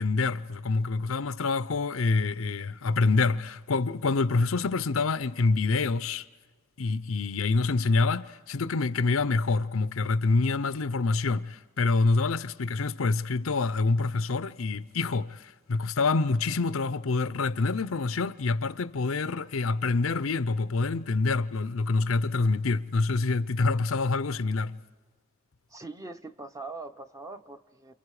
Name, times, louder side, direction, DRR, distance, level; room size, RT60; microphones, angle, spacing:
voice 1, 0.0-6.2 6.8-24.8, left 3 dB, 90° left, 0.7 m, -26 dB
voice 2, 25.7-27.9, right 3 dB, 15° right, 0.9 m, -42 dB
29.0 x 29.0 x 4.9 m
head